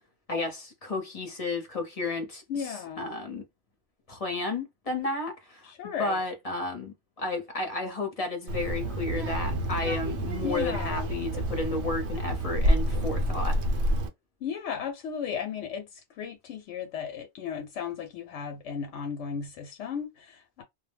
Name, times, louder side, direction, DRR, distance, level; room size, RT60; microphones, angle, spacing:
voice 1, 0.3-3.4 4.1-13.8, left 2 dB, 35° left, 0.7 m, -32 dB
voice 2, 2.5-3.1 5.6-6.2 10.4-11.1 14.4-20.6, left 7 dB, 85° left, 0.9 m, -35 dB
Child speech kid speaking, 8.5-14.1, right 1 dB, 70° right, 0.9 m, -28 dB
2.2 x 2.1 x 3.2 m
omnidirectional pair, 1.2 m